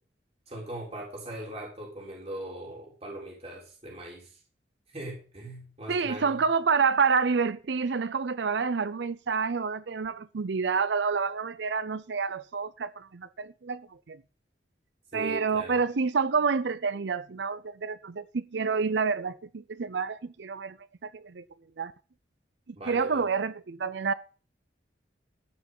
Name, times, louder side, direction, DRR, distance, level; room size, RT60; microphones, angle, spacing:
voice 1, 0.5-4.4 4.9-6.5 15.1-15.8 22.8-23.2, right 1 dB, 35° right, 3.9 m, -40 dB
voice 2, 5.9-14.2 15.1-20.8 21.0-21.4 21.8-21.9 22.9-24.1, right 5 dB, 70° right, 0.5 m, -28 dB
13.5 x 6.2 x 7.2 m
head